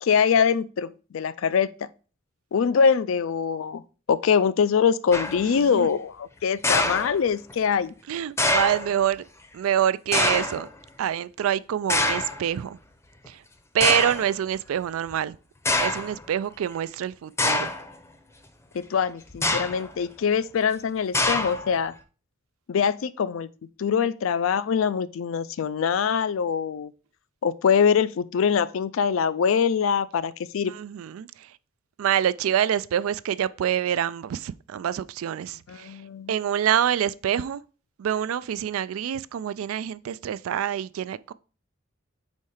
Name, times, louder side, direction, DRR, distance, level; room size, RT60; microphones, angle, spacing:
voice 1, 0.0-1.7 2.5-3.8 4.1-7.9 18.7-21.9 22.7-23.5 23.8-26.9 27.4-30.7 35.7-36.3, left 6 dB, 70° left, 0.4 m, -23 dB
sound 1, 5.1-5.5 6.6-7.5 8.4-8.9 10.1-10.7 11.9-12.4 13.2-13.3 13.8-14.3 15.1-15.2 15.7-16.1 17.4-17.9 19.3-19.9 21.1-21.8, left 2 dB, 15° left, 0.6 m, -25 dB
voice 2, 8.1-9.2 9.5-10.7 11.0-12.8 13.3-13.4 13.7-15.4 15.8-17.7 30.7-31.5 32.0-36.0 36.3-37.6 38.0-41.3, right 10 dB, 85° right, 0.3 m, -26 dB
4.6 x 4.2 x 4.9 m
head